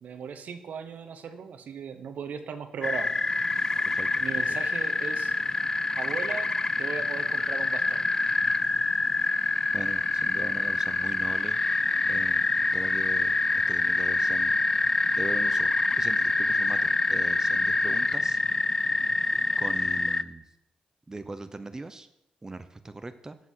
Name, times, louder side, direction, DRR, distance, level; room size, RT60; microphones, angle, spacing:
voice 1, 0.0-3.1 4.2-5.3 6.0-6.5 6.8-8.0, right 7 dB, 70° right, 8 dB, 0.9 m, -37 dB
sound 1, 2.8-20.2, left 3 dB, 25° left, 0.4 m, -26 dB
voice 2, 3.9-4.6 9.7-11.6 12.1-13.4 13.7-14.5 15.2-18.4 19.6-20.4 21.1-22.1 22.4-23.4, right 2 dB, 20° right, 11 dB, 0.7 m, -40 dB
9.2 x 7.3 x 5.6 m, 0.84 s
cardioid pair, 85°, 3 cm